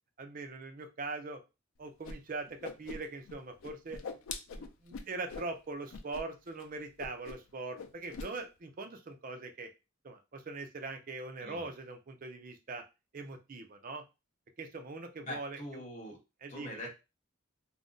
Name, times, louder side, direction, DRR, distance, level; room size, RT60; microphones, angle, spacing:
voice 1, 0.2-1.4 1.8-4.0 4.6-9.7 10.0-12.8 13.1-14.0 14.6-15.6 16.4-16.7, right 3 dB, 40° right, 5 dB, 0.5 m, -42 dB
Whoosh swoosh swish, 2.0-2.1 2.4-3.3 3.6-5.5 5.9-6.2 6.5-6.6 7.0-7.5 7.7-8.3, left 4 dB, 90° left, 0.4 m, -42 dB
voice 2, 15.2-16.2 16.5-16.9, left 1 dB, 40° left, 1 dB, 0.9 m, -43 dB
2.4 x 2.1 x 3.7 m, 0.27 s
head